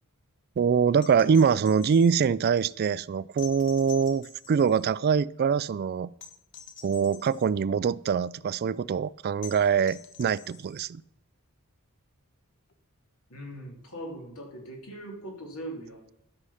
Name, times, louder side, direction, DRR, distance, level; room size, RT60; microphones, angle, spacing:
voice 1, 0.6-6.1 6.8-11.0, right 6 dB, 45° right, 0.3 m, -24 dB
sound 1, 1.0-2.3 3.4-4.9 6.2-7.5 9.4-10.9 12.7-12.8, left 8 dB, 55° left, 1.2 m, -47 dB
voice 2, 13.3-16.0, right 1 dB, 75° left, 3.3 m, -40 dB
13.0 x 6.3 x 5.6 m
head